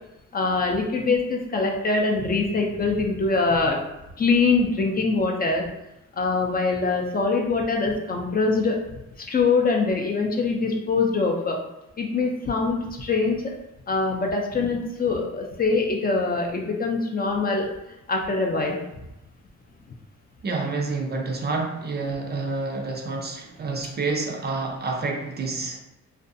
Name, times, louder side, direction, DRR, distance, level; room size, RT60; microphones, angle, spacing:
voice 1, 0.3-3.8 4.2-5.7 6.2-8.8 9.3-11.6 12.0-13.5 13.9-17.7 18.1-18.8, left 3 dB, 30° left, 0.4 m, -23 dB
voice 2, 20.4-25.8, right 3 dB, 35° right, 0.4 m, -28 dB
2.5 x 2.2 x 2.5 m
cardioid pair, 90°, 30 cm